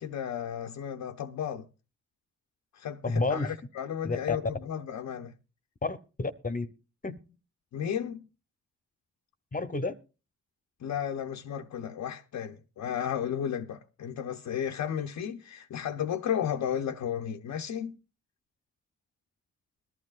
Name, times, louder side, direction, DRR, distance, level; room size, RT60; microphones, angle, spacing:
voice 1, 0.0-1.7 2.7-5.4 7.7-8.3 10.8-18.0, left 9 dB, 70° left, 0.7 m, -33 dB
voice 2, 3.0-3.6 4.0-4.4 5.8-6.7 7.0-7.2 9.5-10.0, left 3 dB, 25° left, 0.8 m, -30 dB
21.5 x 12.0 x 2.4 m
supercardioid pair, 45°, 31 cm